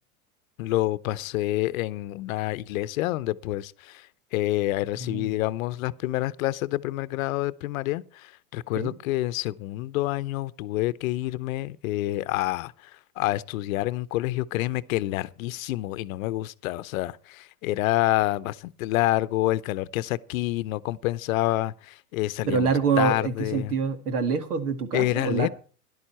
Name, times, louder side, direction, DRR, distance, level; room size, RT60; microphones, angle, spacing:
voice 1, 0.6-23.7 24.9-25.5, left 16 dB, 65° left, 0.7 m, -28 dB
voice 2, 5.0-5.4 8.8-8.9 22.5-25.5, right 5 dB, 85° right, 2.0 m, -26 dB
13.0 x 11.0 x 4.3 m
hypercardioid pair, 120°, 44 cm